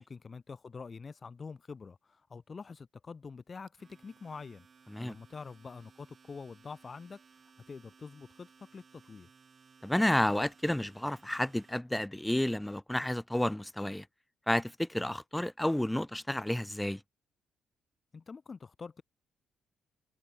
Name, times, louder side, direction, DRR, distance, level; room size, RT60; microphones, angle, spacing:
voice 1, 0.0-4.7 5.0-7.2 7.7-9.3 15.0-15.1 18.1-19.0, left 5 dB, 35° left, 1.2 m, -46 dB
Domestic sounds home sounds, 3.7-11.8, right 5 dB, 40° right, 5.7 m, -61 dB
voice 2, 9.8-14.0 14.5-17.0, left 1 dB, 5° left, 0.3 m, -31 dB
cardioid pair, 90°, 0 cm